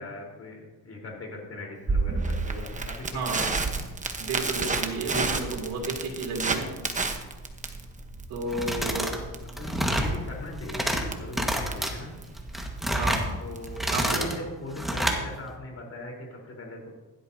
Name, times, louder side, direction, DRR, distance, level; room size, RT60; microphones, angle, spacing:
voice 1, 0.0-3.8 5.2-5.5 8.7-12.1 13.4-16.9, left 2 dB, 45° left, 0 dB, 4.1 m, -40 dB
Crackle, 1.9-13.9, right 3 dB, 20° right, 1.1 m, -31 dB
voice 2, 3.1-3.5 4.2-6.7 8.3-9.1 12.9-13.3 13.9-14.3, right 3 dB, 90° right, 1 dB, 2.9 m, -32 dB
sound 1, 8.5-9.2 9.5-10.1 10.5-11.0 11.3-11.9 12.4-13.3 13.7-14.4 14.8-15.2, equal, ahead, 1.6 m, -28 dB
16.0 x 12.0 x 2.8 m, 1.2 s
cardioid pair, 125°, 35 cm